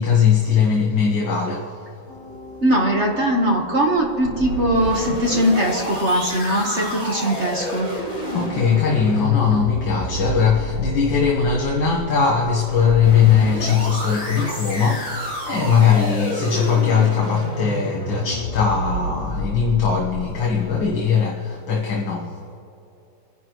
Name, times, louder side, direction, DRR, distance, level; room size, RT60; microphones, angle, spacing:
voice 1, 0.0-1.8 8.3-22.4, left 6 dB, 70° left, 2.0 m, -20 dB
Piano, 2.1-19.2, left 1 dB, 60° right, 4.7 m, -44 dB
voice 2, 2.6-8.0, right 1 dB, 40° right, 1.4 m, -20 dB
sound 1, 4.0-20.8, equal, 20° left, 3.9 m, -29 dB
30.0 x 10.5 x 3.1 m
omnidirectional pair, 2.2 m